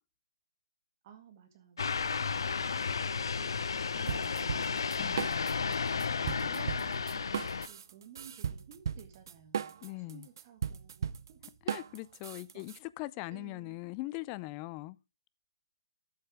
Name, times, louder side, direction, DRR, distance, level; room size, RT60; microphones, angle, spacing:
voice 1, 1.0-2.3 3.3-4.9 5.6-9.8 10.1-11.4 12.5-12.6 13.3-13.8, right 8 dB, 30° right, 1.8 m, -55 dB
sound 1, 1.8-7.7, left 5 dB, 65° left, 0.7 m, -33 dB
sound 2, 4.1-5.7 6.0-12.8, right 8 dB, 50° right, 0.6 m, -37 dB
voice 2, 9.8-10.3 11.6-15.0, left 20 dB, 20° left, 0.4 m, -41 dB
13.0 x 7.6 x 3.6 m
figure-of-eight pair, 145°, 3 cm